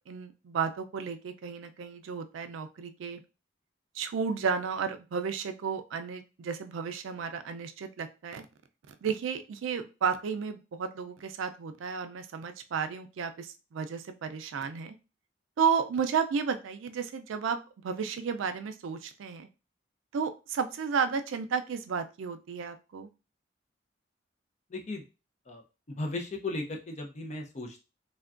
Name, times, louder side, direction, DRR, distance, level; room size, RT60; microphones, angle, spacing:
voice 1, 0.1-3.2 3.9-8.5 8.9-15.0 15.6-17.6 17.8-19.5 20.1-23.1, right 6 dB, 80° right, 8 dB, 0.4 m, -32 dB
voice 2, 24.7-25.0 25.5-25.6 25.9-27.8, left 2 dB, 35° left, 3 dB, 0.5 m, -36 dB
3.4 x 2.2 x 2.4 m, 0.30 s
head